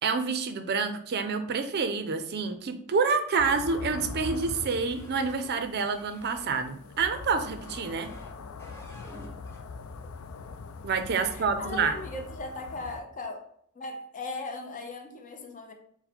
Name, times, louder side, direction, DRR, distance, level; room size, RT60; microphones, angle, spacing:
voice 1, 0.0-8.1 10.8-11.9, right 5 dB, 50° right, 8 dB, 0.4 m, -28 dB
sound 1, 3.4-13.0, left 4 dB, 75° left, 0.4 m, -42 dB
sound 2, 4.3-6.5 7.4-8.3 8.6-9.6, left 1 dB, 15° left, 1.0 m, -51 dB
voice 2, 11.1-13.5 13.7-15.7, left 3 dB, 40° left, 3 dB, 0.6 m, -38 dB
4.2 x 2.1 x 4.2 m, 0.67 s
head